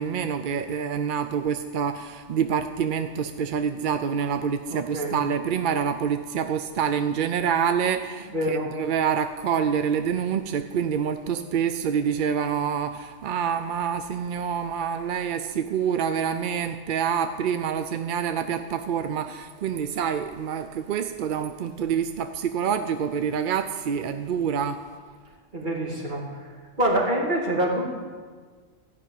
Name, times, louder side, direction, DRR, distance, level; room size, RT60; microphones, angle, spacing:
voice 1, 0.0-24.8, right 7 dB, 60° right, 8 dB, 0.6 m, -27 dB
voice 2, 4.7-5.2 8.3-8.7 25.5-26.5 26.8-27.9, right 1 dB, 40° right, -4 dB, 2.8 m, -26 dB
14.5 x 6.0 x 9.1 m, 1.5 s
omnidirectional pair, 1.3 m